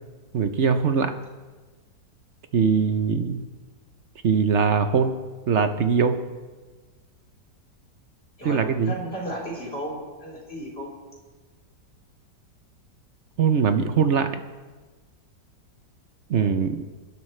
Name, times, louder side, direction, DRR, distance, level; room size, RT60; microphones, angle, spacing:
voice 1, 0.3-1.1 2.5-3.4 4.2-5.2 5.5-6.2 8.4-8.9 13.4-14.3 16.3-16.8, right 6 dB, 55° right, 8 dB, 0.8 m, -21 dB
voice 2, 8.4-10.9, right 1 dB, 35° left, -4 dB, 4.0 m, -34 dB
27.5 x 12.0 x 3.2 m, 1.3 s
omnidirectional pair, 1.9 m